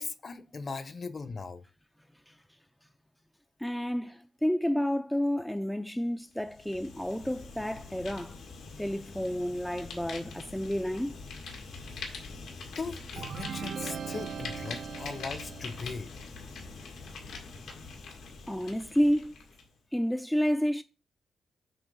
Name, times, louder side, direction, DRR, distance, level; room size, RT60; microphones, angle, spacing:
voice 1, 0.0-1.6 12.7-16.1, left 4 dB, 40° left, 0.9 m, -39 dB
voice 2, 3.6-8.4 8.8-11.2 18.5-19.3 19.9-20.8, equal, 5° left, 0.4 m, -30 dB
Fire, 6.3-19.7, left 4 dB, 90° left, 2.1 m, -44 dB
sound 1, 13.2-16.0, right 8 dB, 65° right, 0.4 m, -39 dB
7.9 x 3.0 x 6.2 m
cardioid pair, 90°, 0 cm